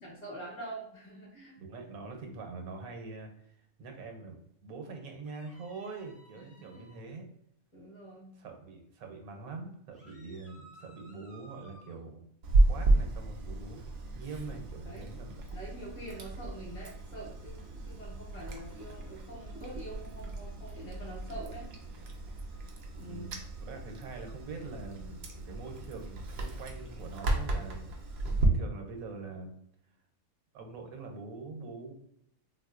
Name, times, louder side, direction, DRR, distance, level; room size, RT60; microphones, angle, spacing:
voice 1, 0.0-1.5 6.6-6.8 7.7-8.3 14.8-15.1 15.5-21.6 22.9-23.2, right 1 dB, 35° left, -3 dB, 0.9 m, -45 dB
voice 2, 1.6-7.3 8.4-12.2 12.7-15.4 23.1-28.0 28.4-29.6 30.5-31.9, right 3 dB, 80° right, 3 dB, 1.1 m, -44 dB
sound 1, 5.2-7.0 9.9-12.0, right 2 dB, 10° right, 0.4 m, -57 dB
Chewing mastication, 12.4-28.5, right 2 dB, 65° right, 0.6 m, -33 dB
3.5 x 2.5 x 2.4 m, 0.72 s
omnidirectional pair, 1.5 m